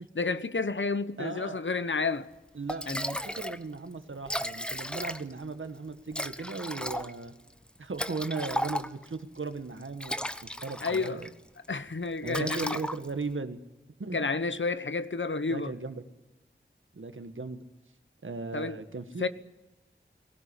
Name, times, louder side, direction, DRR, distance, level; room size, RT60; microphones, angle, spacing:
voice 1, 0.1-2.3 2.9-3.0 10.8-11.2 11.7-12.8 14.1-15.7 18.5-18.8 19.2-19.3, left 4 dB, 70° left, 1.1 m, -30 dB
voice 2, 1.2-1.6 2.5-7.3 7.8-10.2 10.4-11.3 12.2-13.6 14.0-14.2 15.5-15.9 16.9-17.6 18.2-19.3, right 3 dB, 90° right, 1.5 m, -37 dB
Liquid, 2.3-2.4 2.7-3.6 3.9-4.0 4.2-5.4 6.1-9.1 9.8-11.3 11.6-11.9 12.3-13.3, equal, 5° left, 1.2 m, -35 dB
20.0 x 18.0 x 9.7 m
wide cardioid pair, 60°, 20 cm